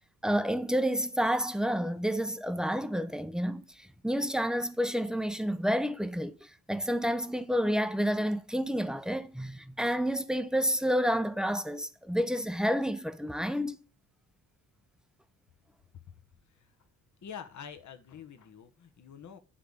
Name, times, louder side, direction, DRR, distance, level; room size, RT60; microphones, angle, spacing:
voice 1, 0.2-13.8, equal, ahead, 0.7 m, -29 dB
voice 2, 17.2-19.4, left 7 dB, 50° left, 1.1 m, -46 dB
10.0 x 3.4 x 5.4 m
supercardioid pair, 60°, 39 cm